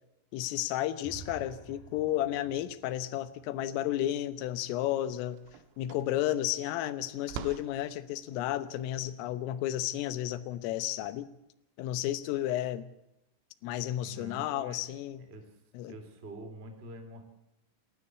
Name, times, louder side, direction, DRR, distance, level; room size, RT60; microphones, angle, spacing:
voice 1, 0.3-5.4 5.8-11.3 11.8-12.9 13.6-15.3 15.7-15.9, left 13 dB, 85° left, 14 dB, 3.7 m, -32 dB
sound 1, 1.0-4.8, right 4 dB, 35° right, 7.2 m, -52 dB
sound 2, 4.3-4.4 4.8-11.2, right 9 dB, 90° right, 3.7 m, -48 dB
voice 2, 14.0-14.8 15.3-15.5 15.9-17.2, right 1 dB, 15° right, 5 dB, 2.6 m, -46 dB
28.5 x 13.0 x 8.3 m, 0.87 s
omnidirectional pair, 5.7 m